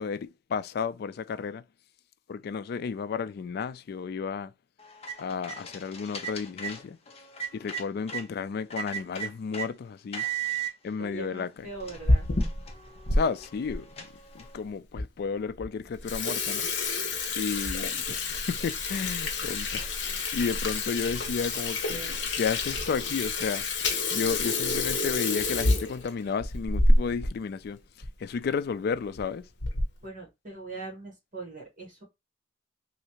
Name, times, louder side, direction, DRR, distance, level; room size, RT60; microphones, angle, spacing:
voice 1, 0.0-1.6 2.3-4.5 5.2-7.0 7.5-10.3 10.8-11.7 13.1-14.1 14.3-16.7 17.4-19.9 20.3-27.8 28.2-29.5, left 5 dB, 55° left, 0.3 m, -32 dB
sound 1, 4.8-8.3 8.7-9.7 10.1-10.7 11.4-11.5 11.8-14.6, right 7 dB, 35° left, 0.7 m, -37 dB
voice 2, 11.0-12.3 12.8-13.0 21.5-22.2 30.0-32.0, right 3 dB, 45° right, 1.4 m, -41 dB
Water tap faucet / Sink (filling or washing), 11.8-13.2 13.7-13.8 14.5-14.6 15.0-15.1 15.4-15.6 15.9-27.3 27.6-27.7 28.0-28.1 28.9-29.2 29.6-30.0, left 2 dB, 70° left, 1.0 m, -28 dB
3.2 x 2.7 x 2.9 m
head